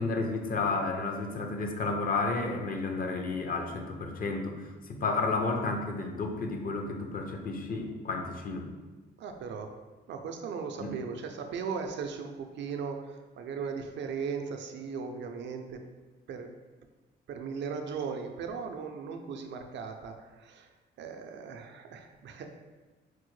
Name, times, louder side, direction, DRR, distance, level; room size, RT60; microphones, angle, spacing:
voice 1, 0.0-8.7 10.8-10.9, left 3 dB, 45° left, 3 dB, 0.5 m, -32 dB
voice 2, 9.2-9.8 10.1-15.8 16.3-16.5 17.3-20.7 21.0-22.5, right 5 dB, 65° right, 5 dB, 0.4 m, -37 dB
4.4 x 2.1 x 3.1 m, 1.2 s
cardioid pair, 90°, 20 cm